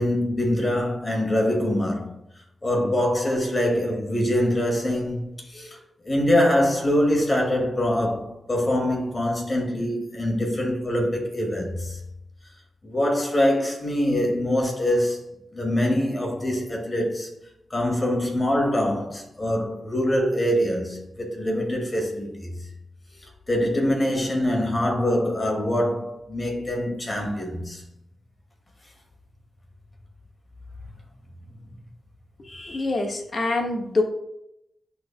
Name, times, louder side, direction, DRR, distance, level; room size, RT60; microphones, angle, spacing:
voice 1, 0.0-2.1 2.6-5.8 6.0-12.0 12.8-17.3 17.7-22.6 23.5-27.8 32.4-32.9, left 1 dB, 35° left, 2.2 m, -24 dB
voice 2, 32.7-34.0, left 2 dB, 50° left, 1.5 m, -25 dB
11.5 x 4.3 x 2.3 m
cardioid pair, 50°, 0 cm